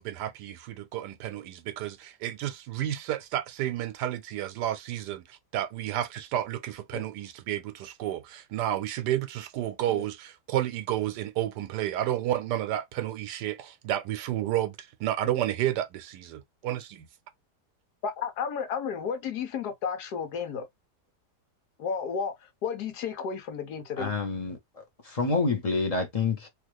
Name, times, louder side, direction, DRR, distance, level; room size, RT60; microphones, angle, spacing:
voice 1, 0.0-17.1, right 12 dB, 90° right, 1.2 m, -31 dB
voice 2, 18.0-20.7 21.8-24.1, left 6 dB, 70° left, 1.4 m, -33 dB
voice 3, 24.0-26.5, left 4 dB, 30° left, 0.8 m, -28 dB
3.2 x 2.4 x 3.0 m
omnidirectional pair, 1.8 m